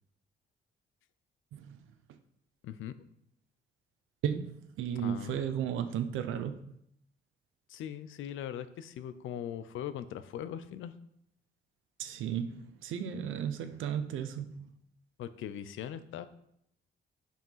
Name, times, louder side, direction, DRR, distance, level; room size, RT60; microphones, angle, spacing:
voice 1, 2.6-2.9 5.0-5.4 7.7-10.9 15.2-16.3, left 10 dB, 80° left, 13 dB, 0.7 m, -40 dB
voice 2, 4.2-6.6 12.0-14.7, right 8 dB, 85° right, 9 dB, 0.8 m, -34 dB
7.4 x 5.8 x 5.6 m, 0.73 s
cardioid pair, 90°, 20 cm